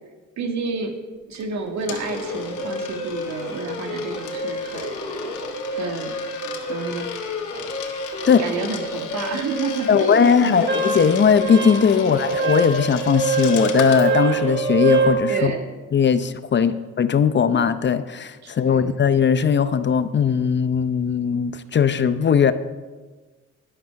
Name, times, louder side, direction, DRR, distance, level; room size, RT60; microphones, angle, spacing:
voice 1, 0.4-1.0 1.3-5.0 5.7-6.1 6.7-7.1 8.4-10.7 12.0-12.2 15.3-15.7 16.5-16.8 18.4-18.9, right 4 dB, 65° right, 5 dB, 1.9 m, -30 dB
Coin (dropping), 1.3-14.1, left 8 dB, 80° left, 1.7 m, -37 dB
sound 1, 2.0-15.1, left 1 dB, 20° left, 3.8 m, -31 dB
voice 2, 9.9-15.6 15.9-22.5, left 7 dB, 40° left, 12 dB, 0.6 m, -19 dB
Wind instrument woodwind instrument, 10.7-15.2, right 5 dB, 40° right, 2.3 m, -23 dB
12.0 x 11.0 x 5.8 m, 1.3 s
cardioid pair, 90°, 30 cm